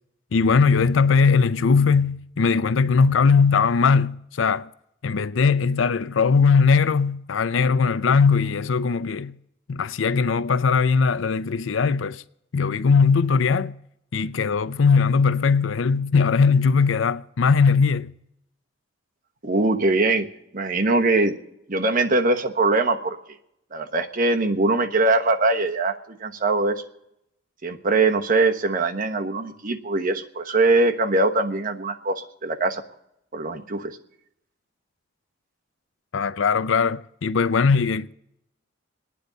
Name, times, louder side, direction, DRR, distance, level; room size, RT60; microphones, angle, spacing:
voice 1, 0.3-4.7 5.0-9.4 9.7-12.2 12.5-13.8 14.1-18.1 36.1-38.1, left 5 dB, 85° left, 0.5 m, -20 dB
voice 2, 19.4-20.3 20.5-21.4 21.7-23.2 23.7-26.8 27.6-32.8 33.3-34.0, right 2 dB, 45° right, 1.2 m, -22 dB
27.5 x 9.9 x 4.0 m
head